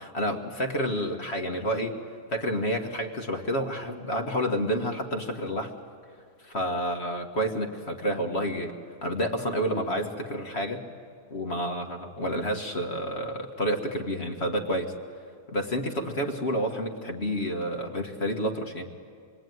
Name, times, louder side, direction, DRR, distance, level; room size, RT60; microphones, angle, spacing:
voice 1, 0.0-2.0 2.3-5.7 6.4-8.7 9.0-10.9 11.3-14.9 15.5-18.9, equal, 40° left, 3 dB, 1.9 m, -29 dB
27.0 x 22.5 x 9.4 m, 2.2 s
omnidirectional pair, 1.7 m